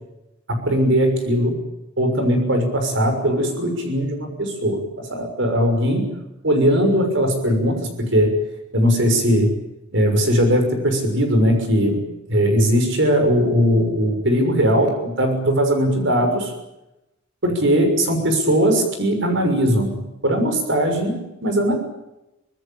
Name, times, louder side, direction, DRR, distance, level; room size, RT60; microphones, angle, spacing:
voice 1, 0.5-1.6 2.0-6.2 6.4-8.4 8.7-9.5 9.9-16.5 17.4-21.7, equal, 65° right, 5 dB, 6.4 m, -19 dB
25.0 x 20.0 x 8.8 m, 0.95 s
head